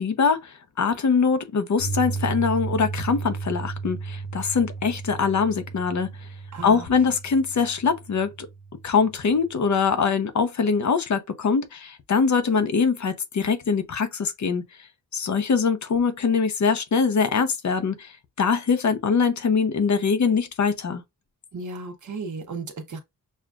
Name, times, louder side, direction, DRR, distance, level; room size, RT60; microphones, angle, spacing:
voice 1, 0.0-6.1 6.6-8.5 8.8-14.6 15.1-18.1 18.4-21.0, left 5 dB, 55° left, 0.8 m, -23 dB
Piano, 1.8-9.9, right 4 dB, 85° left, 1.0 m, -34 dB
voice 2, 6.5-7.1 21.5-23.0, right 3 dB, 60° right, 1.1 m, -35 dB
6.3 x 2.4 x 2.5 m
wide cardioid pair, 130°, 34 cm